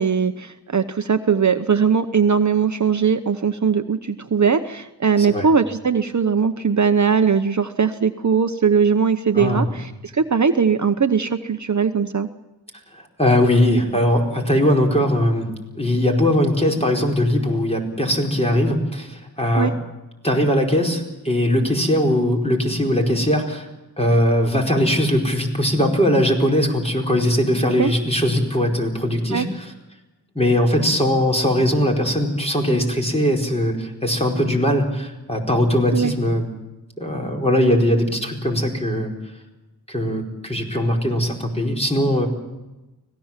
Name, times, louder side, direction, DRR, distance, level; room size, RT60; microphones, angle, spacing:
voice 1, 0.0-12.3 19.6-19.7 27.8-27.9 29.3-29.5 35.9-36.1, right 6 dB, 45° right, 9 dB, 0.9 m, -20 dB
voice 2, 9.3-9.7 12.9-15.5 15.7-19.7 20.2-23.7 24.0-29.7 30.3-36.5 37.0-39.1 39.9-42.3, left 1 dB, 15° left, 1 dB, 4.7 m, -20 dB
25.0 x 18.0 x 7.5 m, 1.0 s
wide cardioid pair, 70°, 40 cm